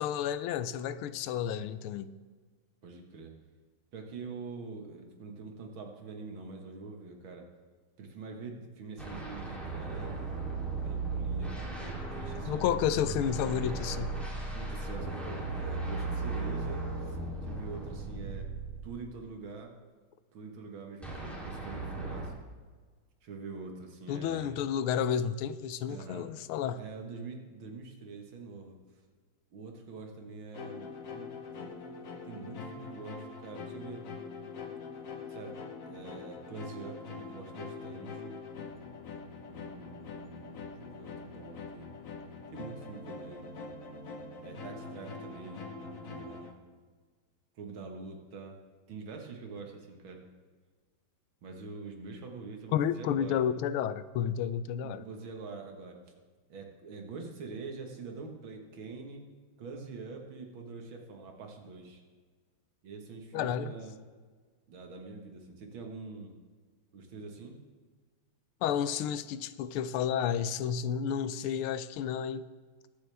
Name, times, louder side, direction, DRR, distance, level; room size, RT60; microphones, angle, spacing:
voice 1, 0.0-2.1 12.5-14.1 24.1-26.8 52.7-55.1 63.3-63.7 68.6-72.5, left 9 dB, 85° left, 14 dB, 1.5 m, -31 dB
voice 2, 2.8-3.3 3.9-7.5 8.0-12.6 14.5-18.5 18.8-19.7 20.3-22.3 23.2-24.5 25.8-26.3 26.8-28.8 29.5-34.1 35.3-38.4 39.5-41.9 42.5-43.5 44.4-46.5 47.6-48.6 48.9-50.3 51.4-53.4 54.8-56.0 56.5-59.2 59.6-62.0 62.8-64.0 64.7-66.3 66.9-67.6, right 4 dB, 70° right, 3 dB, 2.3 m, -45 dB
sound 1, 9.0-19.2 21.0-22.3, right 3 dB, ahead, 2.9 m, -36 dB
sound 2, 30.5-46.5, left 4 dB, 45° left, 1.2 m, -44 dB
22.0 x 8.4 x 3.4 m, 1.5 s
omnidirectional pair, 2.3 m